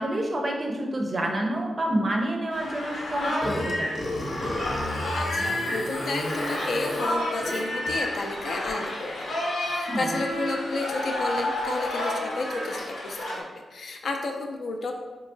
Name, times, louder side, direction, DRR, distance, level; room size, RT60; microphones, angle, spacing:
voice 1, 0.0-3.9 9.9-10.2, right 1 dB, 30° right, 1 dB, 0.5 m, -28 dB
sound 1, 2.5-13.4, left 1 dB, 85° left, 0.9 m, -31 dB
Burping eructation, 3.4-8.2, left 1 dB, 35° left, 0.7 m, -32 dB
voice 2, 5.1-9.3 9.6-14.9, left 3 dB, 60° left, 3 dB, 0.4 m, -32 dB
4.4 x 2.8 x 2.6 m, 1.3 s
wide cardioid pair, 160°, 0 cm